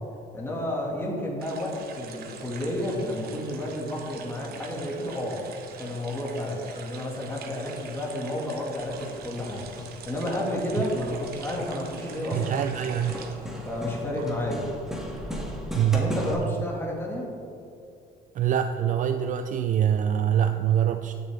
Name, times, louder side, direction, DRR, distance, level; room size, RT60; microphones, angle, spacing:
voice 1, 0.3-5.4 5.8-9.7 10.1-12.6 13.6-14.7 15.9-17.3, left 1 dB, 15° left, -3 dB, 2.7 m, -31 dB
sound 1, 1.4-14.6 14.9-16.1, right 5 dB, 65° right, 1.2 m, -44 dB
Hammer, 8.8-16.3, equal, 5° right, 1.8 m, -39 dB
voice 2, 12.3-13.2 15.7-16.1 18.3-21.1, right 9 dB, 50° right, 7 dB, 0.5 m, -24 dB
17.0 x 7.0 x 3.8 m, 2.6 s
cardioid pair, 110°, 17 cm